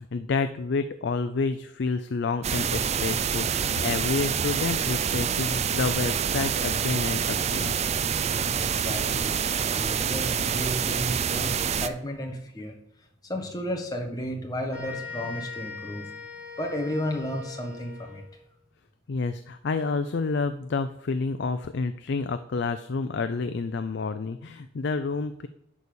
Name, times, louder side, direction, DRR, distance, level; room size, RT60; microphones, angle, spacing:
voice 1, 0.0-7.7 19.1-25.5, left 4 dB, 55° left, 10 dB, 0.4 m, -29 dB
sound 1, 2.4-11.9, right 7 dB, 30° right, 0.4 m, -27 dB
voice 2, 8.6-12.7 13.2-16.1 16.6-18.2, equal, 20° left, 2 dB, 1.3 m, -33 dB
sound 2, 14.7-18.4, left 5 dB, 5° right, 2.6 m, -40 dB
11.0 x 4.1 x 6.9 m, 0.75 s
head